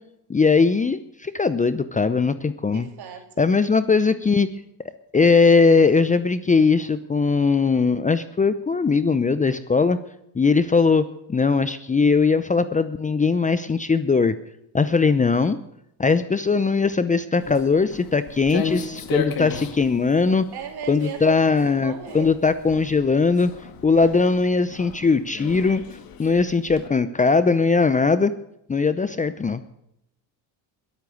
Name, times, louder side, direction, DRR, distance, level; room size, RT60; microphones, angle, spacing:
voice 1, 0.3-2.9 3.4-4.5 5.1-10.0 10.3-14.3 14.7-15.6 16.0-20.5 20.9-23.5 23.8-25.8 26.2-28.3 28.7-29.6, left 4 dB, 15° left, 12 dB, 0.7 m, -20 dB
voice 2, 2.6-3.4 20.5-22.3, right 8 dB, 55° right, 4 dB, 3.1 m, -36 dB
Walk footsteps, 17.4-26.9, left 7 dB, 50° left, 1.9 m, -35 dB
21.5 x 8.7 x 6.3 m, 0.79 s
supercardioid pair, 90°, 46 cm